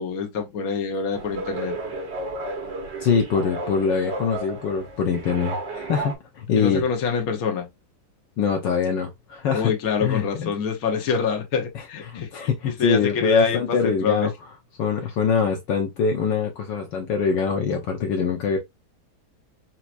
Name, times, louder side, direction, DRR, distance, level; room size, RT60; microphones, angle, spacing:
voice 1, 0.0-1.8 6.5-7.7 9.5-14.3, left 6 dB, 50° left, 1.4 m, -26 dB
sound 1, 1.1-6.1, right 2 dB, 65° right, 2.2 m, -33 dB
voice 2, 3.0-6.8 8.4-9.7 10.0-10.5 11.7-14.3 14.8-18.6, left 6 dB, 70° left, 1.4 m, -24 dB
6.0 x 2.8 x 2.5 m
omnidirectional pair, 2.2 m